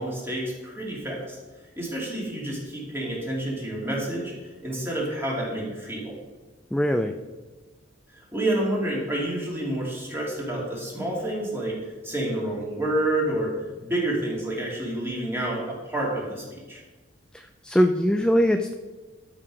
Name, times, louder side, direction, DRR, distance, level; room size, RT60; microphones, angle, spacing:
voice 1, 0.0-1.4 1.8-6.1 8.1-11.8 12.0-13.5 13.8-16.8, right 1 dB, 10° right, -4 dB, 2.8 m, -29 dB
voice 2, 6.7-7.1 17.3-18.7, equal, 5° left, 6 dB, 0.4 m, -22 dB
12.5 x 5.8 x 4.9 m, 1.3 s
head